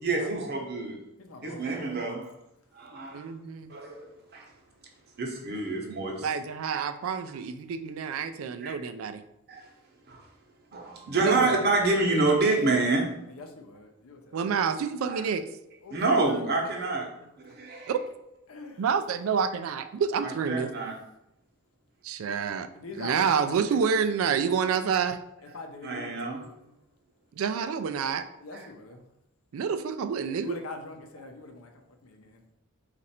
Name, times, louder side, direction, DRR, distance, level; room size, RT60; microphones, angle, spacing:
voice 1, 0.0-1.0 1.4-2.3 2.7-3.3 3.7-4.5 5.2-6.3 6.7-6.8 8.6-8.8 9.5-9.6 10.1-10.2 10.7-13.1 15.1-15.3 15.9-17.1 17.4-17.9 20.2-20.9 25.8-26.4 28.5-28.6, right 3 dB, 50° right, 0 dB, 0.9 m, -27 dB
voice 2, 1.2-2.0 11.2-11.3 13.3-14.5 15.8-16.7 17.2-17.3 18.5-18.9 22.5-23.5 24.8-24.9 25.5-26.7 28.4-29.0 30.4-32.4, left 3 dB, 75° left, 4 dB, 0.6 m, -44 dB
voice 3, 3.1-3.7 6.2-9.2 11.1-11.6 14.3-15.5 17.9-18.0 18.8-20.7 22.0-22.7 23.0-25.2 27.4-28.2 29.5-30.6, right 6 dB, 70° right, 10 dB, 0.3 m, -28 dB
4.2 x 2.5 x 4.2 m, 0.82 s
head